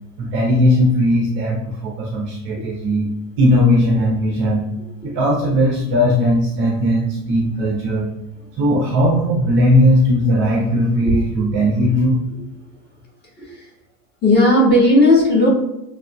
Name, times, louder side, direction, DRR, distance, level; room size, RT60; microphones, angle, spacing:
voice 1, 0.2-3.1 3.4-4.7 5.0-8.1 8.5-12.2, equal, 25° right, -1 dB, 0.6 m, -17 dB
voice 2, 14.2-15.5, left 1 dB, 20° left, -3 dB, 1.5 m, -14 dB
7.1 x 2.7 x 2.3 m, 0.92 s
figure-of-eight pair, 85°, 49 cm